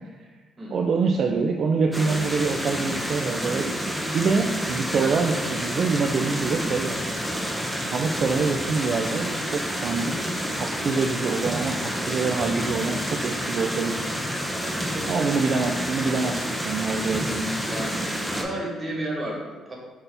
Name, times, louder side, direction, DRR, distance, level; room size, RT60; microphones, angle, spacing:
voice 1, 0.7-3.7 4.1-6.9 7.9-14.0 15.1-17.5, right 4 dB, 55° right, 2 dB, 0.3 m, -25 dB
sound 1, 1.9-18.4, equal, ahead, 0.7 m, -29 dB
Guitar, 5.6-15.0, equal, 80° left, 1.1 m, -50 dB
voice 2, 17.3-19.8, right 1 dB, 30° right, -2 dB, 1.3 m, -33 dB
5.6 x 2.8 x 3.4 m, 1.3 s
cardioid pair, 90°, 0 cm